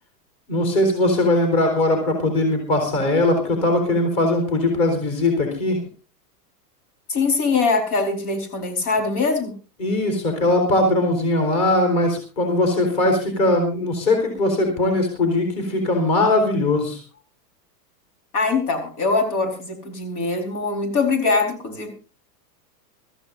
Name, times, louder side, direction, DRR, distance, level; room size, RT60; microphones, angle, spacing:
voice 1, 0.5-5.8 9.8-17.0, left 2 dB, 30° left, 4 dB, 4.3 m, -20 dB
voice 2, 7.1-9.6 18.3-22.0, left 4 dB, 60° left, 5 dB, 4.7 m, -22 dB
24.0 x 14.5 x 2.6 m, 0.33 s
supercardioid pair, 175°, 50 cm